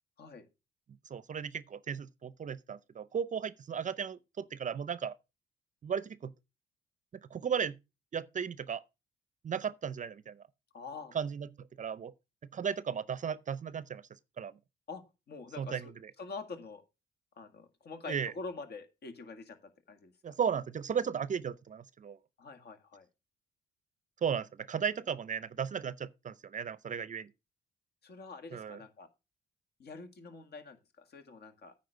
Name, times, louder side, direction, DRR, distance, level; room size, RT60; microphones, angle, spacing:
voice 1, 1.1-5.1 5.8-6.3 7.3-7.8 8.1-8.8 9.4-10.4 11.1-11.5 11.8-12.1 12.5-14.0 14.4-14.5 15.6-16.1 18.1-18.3 20.2-22.2 24.2-27.3 28.5-28.8, right 7 dB, 40° right, 0.5 m, -35 dB
voice 2, 10.7-11.1 14.9-15.9 16.2-16.8 17.4-20.1 22.4-23.1 28.0-29.1 29.8-31.7, left 4 dB, 55° left, 1.9 m, -46 dB
9.4 x 4.3 x 6.5 m
cardioid pair, 90°, 20 cm